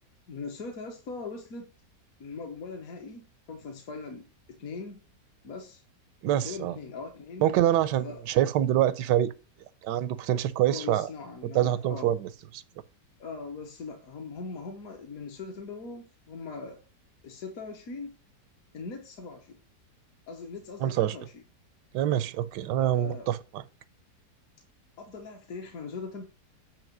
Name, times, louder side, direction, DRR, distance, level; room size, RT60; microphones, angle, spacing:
voice 1, 0.3-1.7 2.2-5.0 5.4-5.8 6.4-7.5 8.0-8.2 10.7-12.2 13.2-16.8 17.2-18.1 18.7-19.6 20.3-21.4 22.8-23.3 25.0-26.2, left 4 dB, 60° left, 1.4 m, -40 dB
voice 2, 6.2-6.8 7.4-9.3 9.8-11.1 11.5-12.6 20.8-21.2 21.9-23.6, right 12 dB, 85° right, 1.2 m, -26 dB
8.9 x 3.0 x 5.9 m
omnidirectional pair, 1.8 m